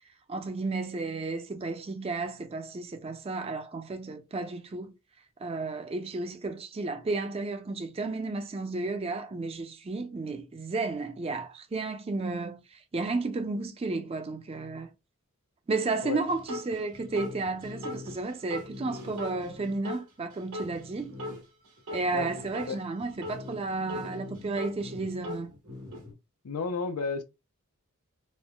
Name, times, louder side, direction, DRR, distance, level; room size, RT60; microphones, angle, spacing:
voice 1, 0.3-4.9 5.4-14.9 15.7-21.1 21.9-25.5, right 3 dB, 25° right, 0.4 m, -33 dB
sound 1, 16.3-20.0 20.3-22.7 23.0-26.1, left 2 dB, 85° right, 1.2 m, -40 dB
voice 2, 26.4-27.2, left 4 dB, 85° left, 0.5 m, -31 dB
4.2 x 2.0 x 2.3 m
head